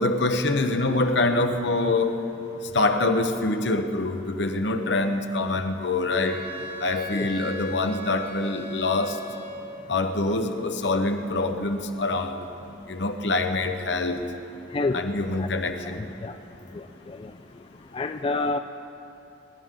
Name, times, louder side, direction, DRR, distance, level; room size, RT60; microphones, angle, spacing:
voice 1, 0.0-2.2 2.7-6.4 6.8-9.2 9.9-12.5 12.9-14.2 14.9-16.0, left 2 dB, 70° left, 6 dB, 1.0 m, -25 dB
Wind instrument woodwind instrument, 6.2-10.0, equal, 30° right, 1.3 m, -38 dB
voice 2, 16.0-16.3 16.7-17.2 17.9-18.6, left 3 dB, 30° left, 7 dB, 0.3 m, -28 dB
25.5 x 12.0 x 3.8 m, 3.0 s
head